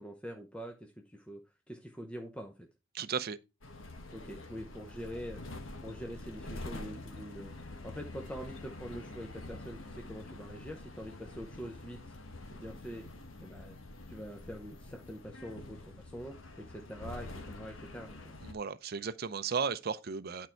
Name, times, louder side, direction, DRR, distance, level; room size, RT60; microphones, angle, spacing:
voice 1, 0.0-1.4 1.7-2.5 4.1-5.6 5.8-12.0 12.5-13.1 13.4-13.8 14.1-18.2, equal, 5° left, 0.7 m, -44 dB
voice 2, 2.9-3.4 18.4-20.5, right 6 dB, 50° right, 0.6 m, -35 dB
sound 1, 3.6-18.5, left 2 dB, 75° left, 1.3 m, -46 dB
9.2 x 4.6 x 4.4 m
head